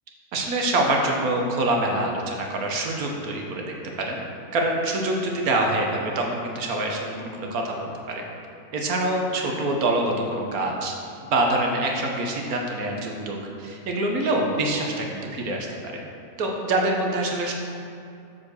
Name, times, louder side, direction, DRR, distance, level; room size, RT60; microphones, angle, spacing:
voice 1, 0.3-4.2 4.5-8.2 8.7-10.9 11.3-16.0 16.4-17.5, right 2 dB, 80° right, 1 dB, 1.4 m, -25 dB
7.6 x 4.5 x 6.3 m, 2.6 s
omnidirectional pair, 1.5 m